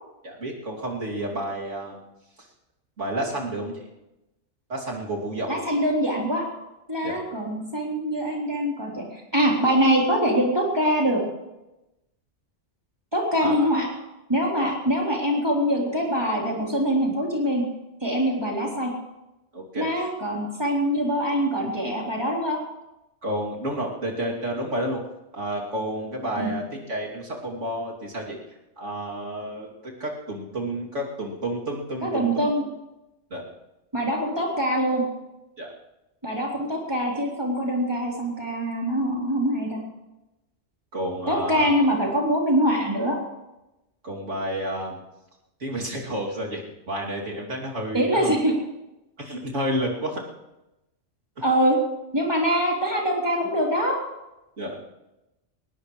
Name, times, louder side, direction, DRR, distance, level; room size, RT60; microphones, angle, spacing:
voice 1, 0.2-2.0 3.0-3.8 4.7-5.6 7.0-7.2 13.4-13.7 14.6-14.7 19.5-19.9 23.2-25.0 25.3-28.4 28.8-32.5 33.3-33.4 35.6-35.7 40.9-41.7 44.0-45.0 45.6-48.3 49.2-50.2 54.6-54.8, right 1 dB, 80° right, -2 dB, 3.3 m, -30 dB
voice 2, 5.5-6.4 6.9-11.2 13.1-13.9 14.3-17.6 18.0-18.9 19.8-22.6 26.4-26.5 32.0-32.7 33.9-35.0 36.2-39.8 41.3-43.2 47.9-48.5 51.4-51.8 52.1-54.0, equal, 20° right, -3 dB, 3.9 m, -24 dB
21.0 x 19.0 x 3.3 m, 0.96 s
omnidirectional pair, 1.2 m